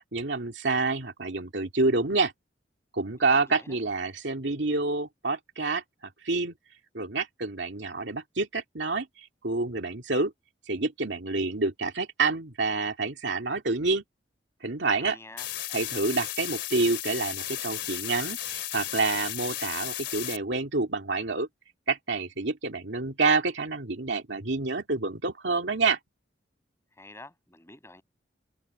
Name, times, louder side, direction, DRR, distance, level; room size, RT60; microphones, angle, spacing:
voice 1, 0.0-2.3 2.9-5.8 6.2-6.5 6.9-9.1 9.4-10.3 10.7-14.0 14.6-15.2 15.7-21.5 21.9-26.0, right 3 dB, 75° right, 2.5 m, -28 dB
voice 2, 3.3-3.8 15.0-15.5 27.0-28.0, left 2 dB, 15° left, 5.8 m, -48 dB
sound 1, 15.4-20.4, left 13 dB, 70° left, 3.3 m, -34 dB
head